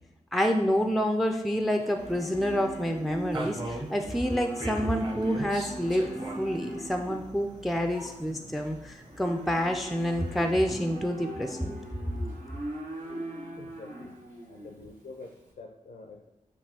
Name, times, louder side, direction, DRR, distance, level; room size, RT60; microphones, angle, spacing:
voice 1, 0.3-11.8, equal, ahead, 5 dB, 0.3 m, -28 dB
Livestock farm animals working animals, 0.7-15.5, right 1 dB, 80° right, 1.1 m, -41 dB
sound 1, 2.0-10.6, right 1 dB, 35° right, 1.0 m, -41 dB
voice 2, 13.6-14.1 14.5-16.3, left 3 dB, 85° left, 2 dB, 0.5 m, -46 dB
6.9 x 2.6 x 2.8 m, 1.0 s
wide cardioid pair, 75°, 14 cm